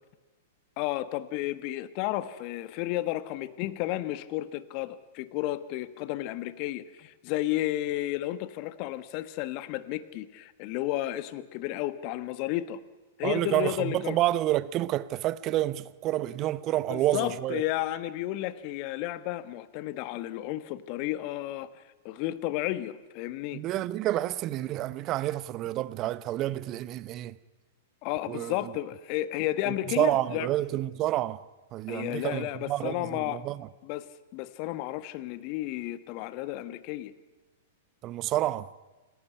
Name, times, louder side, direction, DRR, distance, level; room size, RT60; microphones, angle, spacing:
voice 1, 0.8-12.8 13.2-14.2 16.9-23.6 28.0-30.5 31.9-33.4 33.8-37.1, left 15 dB, 45° left, 1.4 m, -32 dB
voice 2, 13.2-17.6 23.5-27.4 28.3-28.7 29.7-31.4 31.7-33.7 38.0-38.7, right 14 dB, 35° right, 0.9 m, -29 dB
28.0 x 17.5 x 9.6 m
figure-of-eight pair, 100°, 0 cm